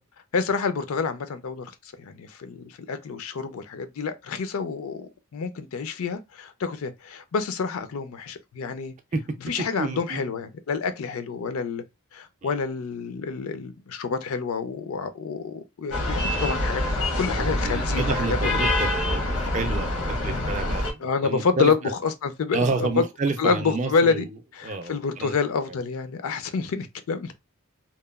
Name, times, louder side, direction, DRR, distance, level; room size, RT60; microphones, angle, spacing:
voice 1, 0.3-1.7 2.0-8.9 9.4-11.8 12.1-16.8 17.2-18.5 21.0-21.8 22.0-23.0 23.4-24.3 24.5-27.3, left 5 dB, 70° left, 0.4 m, -28 dB
voice 2, 9.8-10.2 12.4-12.5 17.3-21.7 22.5-24.3 24.6-25.4, right 3 dB, 35° right, 0.4 m, -29 dB
sound 1, 15.9-20.9, left 1 dB, 90° left, 0.9 m, -25 dB
2.9 x 2.2 x 2.2 m
head